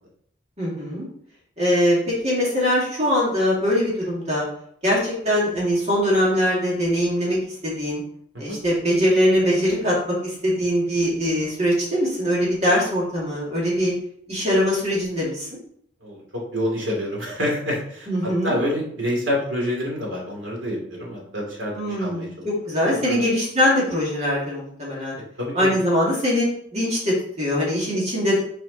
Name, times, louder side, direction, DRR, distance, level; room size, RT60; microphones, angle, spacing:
voice 1, 0.6-1.1 1.6-4.5 4.8-8.0 8.4-10.0 10.2-13.9 14.3-15.5 18.1-18.6 21.7-25.2 25.5-28.4, equal, 35° right, -5 dB, 2.2 m, -22 dB
voice 2, 16.0-22.5 22.8-23.2 25.4-25.8, equal, 80° right, -2 dB, 2.5 m, -27 dB
6.0 x 5.0 x 4.0 m, 0.66 s
head